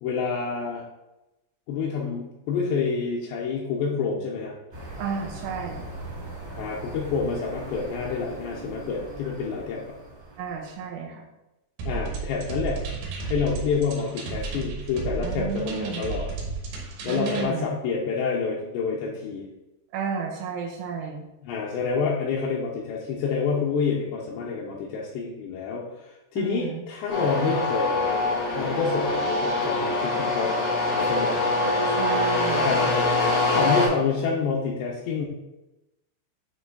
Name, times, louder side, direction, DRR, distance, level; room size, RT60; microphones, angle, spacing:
voice 1, 0.0-0.8 1.7-4.6 6.6-9.8 11.9-12.8 13.2-16.3 17.0-19.5 21.4-28.1 28.5-30.5 30.9-31.5 32.6-32.8 33.2-35.3, left 5 dB, 80° left, -3 dB, 2.6 m, -28 dB
sound 1, 4.7-10.8, right 2 dB, 30° right, 1.0 m, -40 dB
voice 2, 5.0-5.9 10.4-11.2 15.2-16.0 17.1-17.7 19.9-21.3 26.4-26.8 31.8-32.9, right 6 dB, 85° right, 1 dB, 3.3 m, -32 dB
sound 2, 11.8-17.4, right 4 dB, 70° right, 2.9 m, -33 dB
sound 3, 27.1-33.9, left 2 dB, 60° left, 1.5 m, -24 dB
9.4 x 3.2 x 3.9 m, 0.98 s
omnidirectional pair, 5.6 m